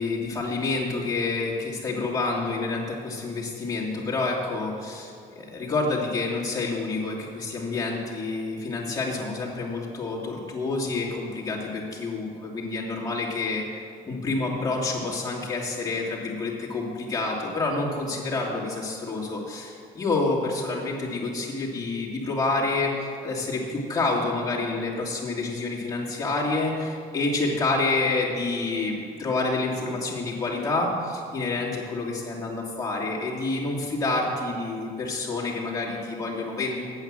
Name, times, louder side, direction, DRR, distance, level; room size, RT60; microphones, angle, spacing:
voice 1, 0.0-13.6 14.0-36.8, left 3 dB, 20° left, -4 dB, 2.7 m, -28 dB
9.0 x 8.2 x 7.6 m, 2.5 s
cardioid pair, 110°, 17 cm